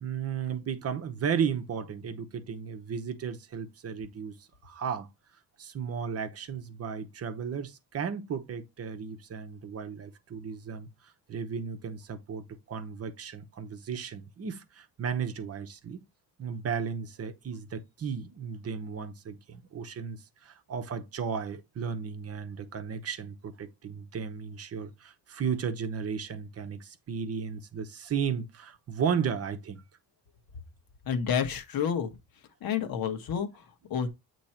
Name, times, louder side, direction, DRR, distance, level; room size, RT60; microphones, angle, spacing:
voice 1, 0.0-4.4 4.6-5.1 5.6-10.9 11.3-16.1 16.4-29.8, right 7 dB, 35° right, 0.9 m, -34 dB
voice 2, 31.0-32.2 32.6-34.1, left 7 dB, 60° left, 1.3 m, -30 dB
8.5 x 3.1 x 4.3 m
cardioid pair, 150°, 40 cm